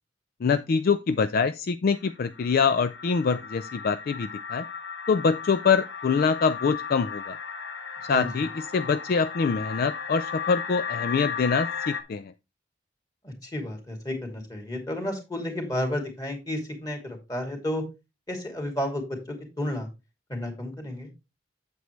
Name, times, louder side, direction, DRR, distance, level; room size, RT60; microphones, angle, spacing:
voice 1, 0.4-4.7 5.1-7.4 8.1-12.3, left 5 dB, 50° left, 12 dB, 0.4 m, -24 dB
sound 1, 1.9-12.0, left 6 dB, 70° left, 1.3 m, -35 dB
voice 2, 8.1-8.5 13.2-17.8 18.3-19.9 20.3-21.1, left 1 dB, 20° left, 3 dB, 2.5 m, -32 dB
8.1 x 7.9 x 3.2 m, 0.26 s
head